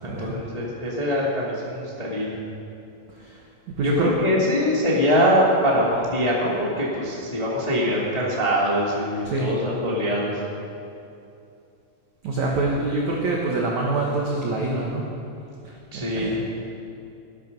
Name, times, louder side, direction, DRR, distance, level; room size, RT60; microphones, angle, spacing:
voice 1, 0.0-2.3 3.8-10.4 15.9-16.3, equal, 30° left, -5 dB, 0.7 m, -23 dB
voice 2, 3.7-4.1 9.3-9.5 12.2-15.0 15.9-16.4, right 2 dB, 65° right, -2 dB, 1.9 m, -25 dB
18.5 x 12.0 x 5.5 m, 2.7 s
omnidirectional pair, 5.3 m